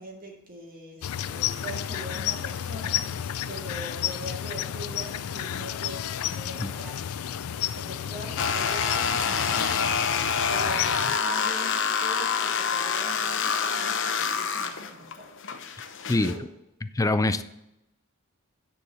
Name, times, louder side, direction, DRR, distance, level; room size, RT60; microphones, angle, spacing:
voice 1, 0.0-3.2 3.5-16.5, right 1 dB, 45° right, 2.1 m, -42 dB
sound 1, 1.0-11.2, left 10 dB, 90° left, 0.4 m, -32 dB
sound 2, 8.4-16.3, left 6 dB, 65° left, 0.9 m, -27 dB
voice 2, 16.9-17.4, left 2 dB, 15° left, 0.4 m, -23 dB
9.9 x 4.6 x 6.8 m
head